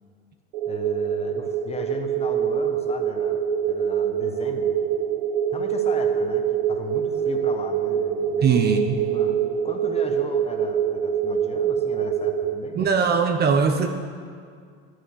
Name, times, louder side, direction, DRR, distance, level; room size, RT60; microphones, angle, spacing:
sound 1, 0.5-12.5, right 8 dB, 60° right, 0.8 m, -25 dB
voice 1, 0.6-4.7 5.5-8.6 8.9-12.9, left 4 dB, 20° left, 5 dB, 1.3 m, -37 dB
voice 2, 8.4-9.0 12.7-13.9, right 6 dB, 30° right, 6 dB, 0.8 m, -20 dB
11.0 x 6.4 x 8.2 m, 2.1 s
hypercardioid pair, 85°, 31 cm